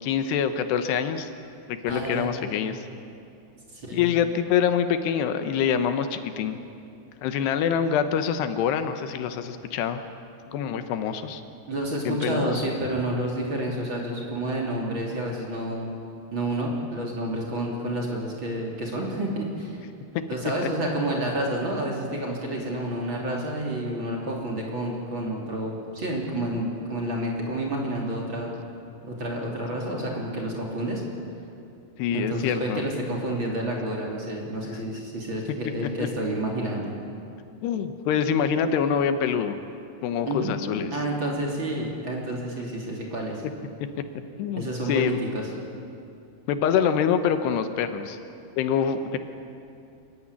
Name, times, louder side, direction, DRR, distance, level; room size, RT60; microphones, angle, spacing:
voice 1, 0.0-1.3 1.7-2.8 3.9-6.6 7.2-10.0 10.5-11.4 12.1-12.5 20.1-20.2 32.0-32.8 36.0-36.1 37.6-39.6 40.0-40.9 44.4-45.2 46.5-48.2 48.6-49.2, left 8 dB, 85° left, 9 dB, 3.2 m, -25 dB
voice 2, 1.9-2.3 3.7-4.1 11.7-15.9 16.3-19.8 20.3-28.5 29.0-31.0 32.1-36.9 40.3-40.5 40.9-43.4 44.5-45.4, right 1 dB, 30° right, -2 dB, 3.4 m, -29 dB
26.0 x 15.0 x 9.9 m, 2.6 s
omnidirectional pair, 4.7 m